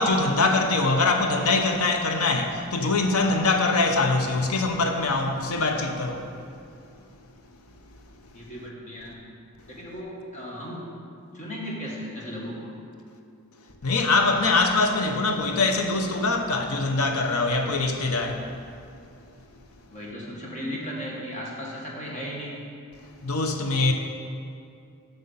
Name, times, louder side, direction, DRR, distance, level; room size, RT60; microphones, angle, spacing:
voice 1, 0.0-6.3 13.8-18.5 23.2-23.9, left 3 dB, 90° left, 0.8 m, -23 dB
voice 2, 8.3-9.2 9.7-10.9 11.3-12.7 19.9-22.6, equal, 35° left, 1.7 m, -36 dB
7.6 x 6.9 x 5.7 m
head